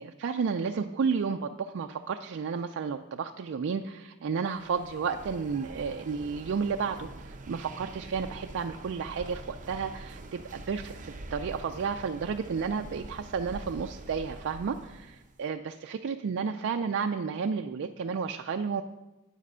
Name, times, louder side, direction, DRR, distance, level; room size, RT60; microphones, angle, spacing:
voice 1, 0.0-18.8, right 5 dB, 55° right, 6 dB, 0.4 m, -32 dB
sound 1, 4.5-15.4, right 2 dB, 35° right, 0.7 m, -45 dB
9.3 x 7.4 x 5.5 m, 1.0 s
head